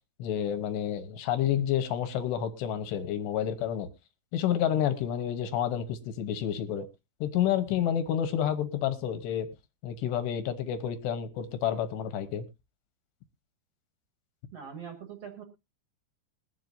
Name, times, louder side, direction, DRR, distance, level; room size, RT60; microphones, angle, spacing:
voice 1, 0.2-3.9 4.3-6.9 7.2-9.5 9.8-12.4, left 10 dB, 75° left, 9 dB, 3.0 m, -29 dB
voice 2, 14.5-15.4, right 7 dB, 60° right, 4 dB, 1.7 m, -42 dB
22.0 x 7.7 x 2.6 m, 0.24 s
omnidirectional pair, 5.4 m